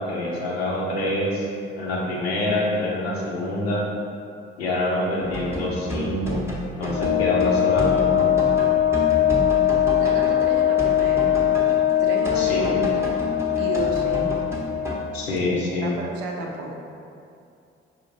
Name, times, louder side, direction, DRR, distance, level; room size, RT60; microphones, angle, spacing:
voice 1, 0.0-1.5 1.8-3.8 4.6-6.4 6.8-8.3 12.3-12.7 15.1-16.0, left 1 dB, 80° left, -4 dB, 0.7 m, -26 dB
sound 1, 5.2-14.9, equal, 10° right, 0.7 m, -31 dB
Wind instrument woodwind instrument, 6.9-14.7, left 11 dB, 30° left, 0.5 m, -21 dB
voice 2, 10.0-11.3 12.0-13.1 13.6-14.3 15.5-16.8, right 2 dB, 65° right, 0 dB, 0.6 m, -32 dB
4.9 x 2.8 x 2.6 m, 2.5 s
figure-of-eight pair, 45°, 31 cm